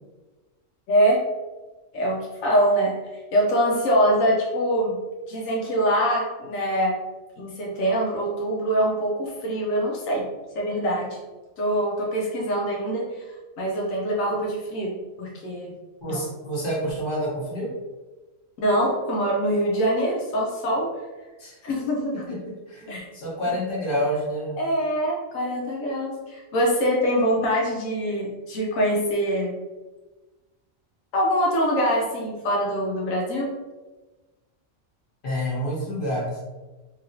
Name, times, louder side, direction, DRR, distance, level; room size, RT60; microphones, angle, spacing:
voice 1, 0.9-1.2 1.9-2.9 3.3-5.0 5.3-7.0 7.4-10.3 10.5-11.2 11.6-13.2 13.6-15.7 16.1-16.2 18.6-20.9 21.6-22.3 22.9-23.0 24.6-29.5 31.1-33.5, equal, 85° left, -3 dB, 1.1 m, -24 dB
voice 2, 16.0-17.7 21.4-21.5 22.3-24.6 35.2-36.4, equal, 45° left, -6 dB, 1.3 m, -28 dB
3.0 x 2.8 x 2.6 m, 1.2 s
omnidirectional pair, 1.4 m